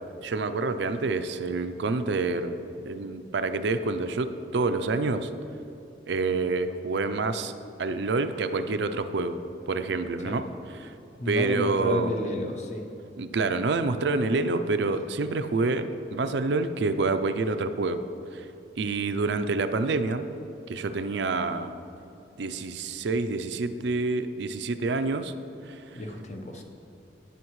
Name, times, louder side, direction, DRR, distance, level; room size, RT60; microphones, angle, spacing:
voice 1, 0.2-2.6 2.8-5.3 6.1-7.5 7.8-9.4 9.7-10.4 10.8-10.9 11.3-12.1 13.2-18.0 18.3-18.5 18.8-20.3 20.7-21.7 22.4-25.3 25.7-25.8, right 3 dB, 70° right, 9 dB, 0.5 m, -27 dB
voice 2, 11.2-12.9 25.9-26.6, left 1 dB, 40° left, 2 dB, 0.9 m, -32 dB
17.0 x 5.7 x 3.1 m, 2.8 s
head